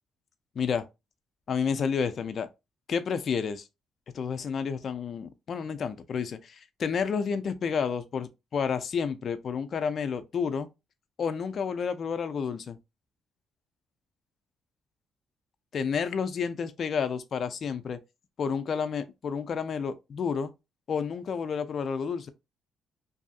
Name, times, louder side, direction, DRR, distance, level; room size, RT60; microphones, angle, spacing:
voice 1, 0.6-0.9 1.5-2.5 2.9-3.6 4.1-10.7 11.2-12.8 15.7-18.0 18.4-20.5 20.9-22.3, left 6 dB, 55° left, 0.4 m, -30 dB
2.6 x 2.5 x 2.4 m
cardioid pair, 90°, 0 cm